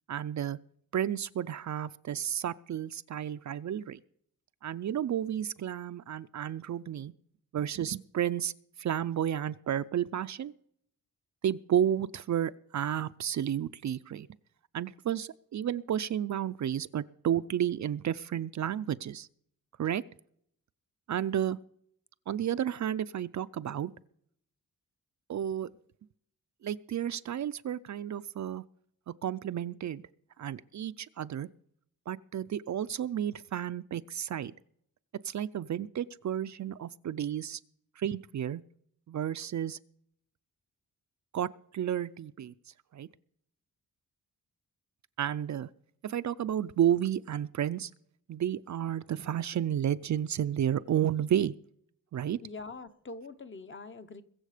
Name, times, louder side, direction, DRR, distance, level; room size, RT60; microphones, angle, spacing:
voice 1, 0.1-0.6 0.9-4.0 4.6-7.1 7.5-8.5 8.8-10.5 11.4-14.3 14.7-19.3 19.8-20.0 21.1-21.6 22.3-23.9 25.3-25.7 26.6-28.6 29.1-30.0 30.4-31.5 32.1-34.5 35.2-37.6 38.0-38.6 39.1-39.8 41.3-42.5 42.9-43.1 45.2-45.7 46.0-47.9 48.3-51.5 52.1-52.4, right 10 dB, 55° right, 0.4 m, -32 dB
voice 2, 52.4-54.2, left 3 dB, 35° left, 0.8 m, -44 dB
22.0 x 7.4 x 5.0 m
wide cardioid pair, 170°, 35 cm